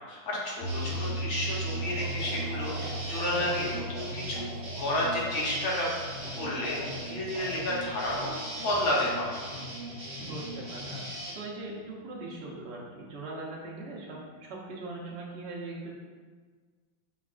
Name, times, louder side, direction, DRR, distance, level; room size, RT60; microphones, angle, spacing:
voice 1, 0.1-4.5 4.8-5.9 6.4-9.3, left 1 dB, 90° left, -5 dB, 1.7 m, -31 dB
sound 1, 0.6-10.8, right 2 dB, 70° left, 0.9 m, -39 dB
sound 2, 0.6-11.3, equal, 35° right, 0.7 m, -40 dB
sound 3, 1.8-8.3, equal, 20° left, 0.4 m, -45 dB
voice 2, 3.3-3.8 10.2-15.9, right 2 dB, 70° right, -4 dB, 0.6 m, -41 dB
5.6 x 2.2 x 2.4 m, 1.5 s
omnidirectional pair, 2.1 m